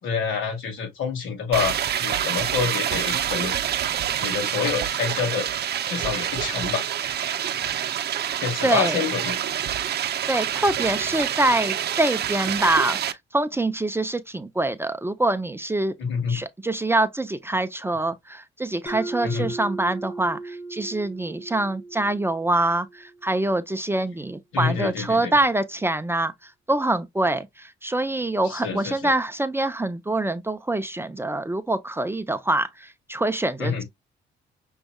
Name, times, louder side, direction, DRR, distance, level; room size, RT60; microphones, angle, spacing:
voice 1, 0.0-3.5 4.2-5.5 5.9-6.8 8.4-9.4 16.0-16.3 19.2-19.5 24.5-25.3 28.4-29.1 33.6-33.8, left 6 dB, 80° left, 2.9 m, -27 dB
sound 1, 1.5-13.1, right 10 dB, 55° right, 0.7 m, -27 dB
voice 2, 8.6-9.0 10.3-15.9 16.3-33.8, right 2 dB, 10° right, 0.6 m, -25 dB
Mallet percussion, 18.9-23.4, right 2 dB, 25° left, 1.4 m, -37 dB
6.3 x 3.3 x 2.3 m
cardioid pair, 90°, 20 cm